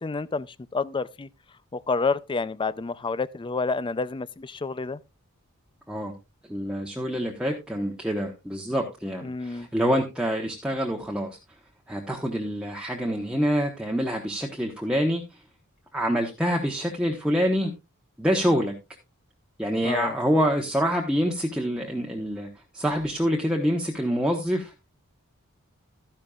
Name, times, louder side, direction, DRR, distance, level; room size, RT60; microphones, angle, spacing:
voice 1, 0.0-1.3 1.7-5.0 9.2-9.7 19.8-20.2, left 4 dB, 20° left, 0.4 m, -29 dB
voice 2, 6.5-11.4 11.9-15.2 15.9-17.7 18.2-18.7 19.6-22.5 22.7-24.7, equal, 5° right, 1.0 m, -26 dB
13.0 x 10.5 x 2.4 m
head